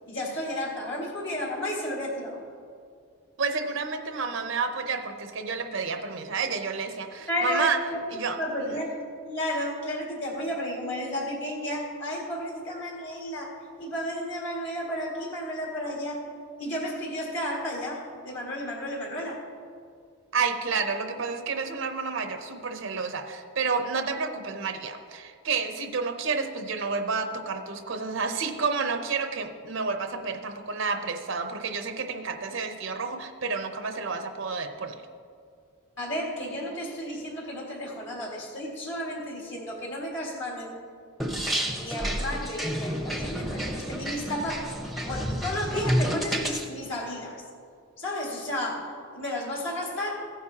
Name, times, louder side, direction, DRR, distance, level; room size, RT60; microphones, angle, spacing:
voice 1, 0.1-2.4 7.3-8.0 8.4-8.9 9.3-16.2 16.6-19.4 36.0-40.8 41.8-47.4 48.0-50.3, left 1 dB, 55° left, -2 dB, 2.0 m, -32 dB
voice 2, 3.4-7.8 8.1-8.7 20.3-35.0, right 4 dB, 60° right, 7 dB, 0.6 m, -30 dB
sound 1, 41.2-46.6, equal, ahead, 0.7 m, -30 dB
15.5 x 9.7 x 2.8 m, 2.3 s
head